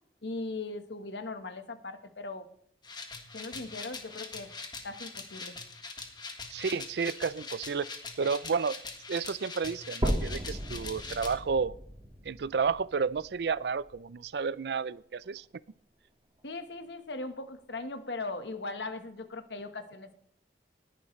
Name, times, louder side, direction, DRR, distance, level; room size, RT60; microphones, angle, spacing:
voice 1, 0.2-2.5 3.3-4.5 4.8-5.5 16.4-20.1, left 3 dB, 80° left, 9 dB, 1.3 m, -39 dB
sound 1, 2.8-11.3, left 4 dB, 25° left, 1.6 m, -43 dB
voice 2, 6.5-7.9 8.2-8.8 9.1-11.8 12.2-15.4, right 5 dB, 65° right, 19 dB, 0.4 m, -31 dB
sound 2, 10.0-14.0 14.6-14.7 15.2-15.3 15.7-15.8 16.6-16.7, equal, 25° right, 1.8 m, -35 dB
19.0 x 11.0 x 3.2 m, 0.66 s
head